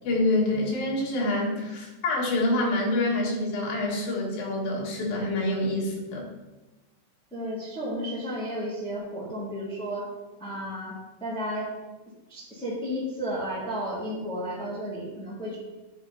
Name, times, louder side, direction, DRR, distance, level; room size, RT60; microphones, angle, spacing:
voice 1, 0.0-6.3, left 2 dB, 75° left, -3 dB, 3.5 m, -26 dB
voice 2, 7.3-10.1 10.4-11.7 12.3-15.6, equal, ahead, -6 dB, 1.2 m, -33 dB
9.9 x 4.5 x 4.1 m, 1.1 s
omnidirectional pair, 4.3 m